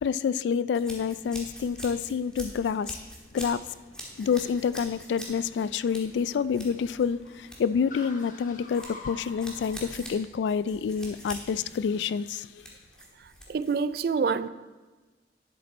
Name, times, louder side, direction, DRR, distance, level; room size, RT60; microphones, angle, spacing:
voice 1, 0.0-3.0 3.3-3.7 4.2-12.7, left 6 dB, 85° left, 0.3 m, -28 dB
sound 1, 0.7-13.9, equal, 5° left, 1.5 m, -45 dB
Car, 0.9-9.8, left 2 dB, 45° left, 1.2 m, -50 dB
voice 2, 13.2-14.5, right 5 dB, 55° right, 0.3 m, -27 dB
10.0 x 7.8 x 4.3 m
head